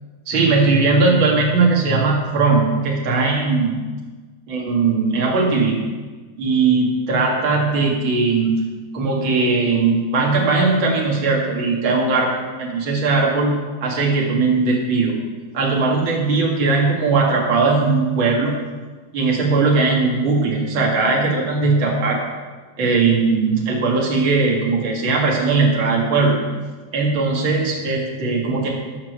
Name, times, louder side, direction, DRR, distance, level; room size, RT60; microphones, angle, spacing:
voice 1, 0.3-3.7 4.5-5.8 6.4-8.6 8.9-12.3 12.6-13.5 13.8-15.1 15.5-18.6 19.1-22.2 22.8-26.4 26.9-28.7, right 3 dB, 40° right, -2 dB, 2.0 m, -19 dB
15.0 x 5.9 x 6.8 m, 1.4 s
omnidirectional pair, 5.4 m